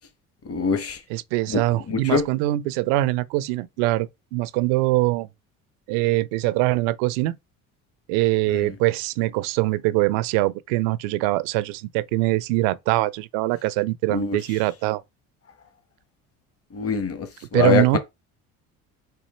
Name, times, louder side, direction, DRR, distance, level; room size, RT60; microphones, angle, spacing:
voice 1, 0.4-1.0 1.5-2.2 8.5-8.7 14.1-14.4 16.7-18.0, left 6 dB, 40° left, 1.3 m, -24 dB
voice 2, 1.1-5.3 5.9-7.4 8.1-15.0 17.5-18.0, right 18 dB, 90° right, 0.5 m, -23 dB
4.4 x 2.9 x 4.3 m
supercardioid pair, 90°, 36 cm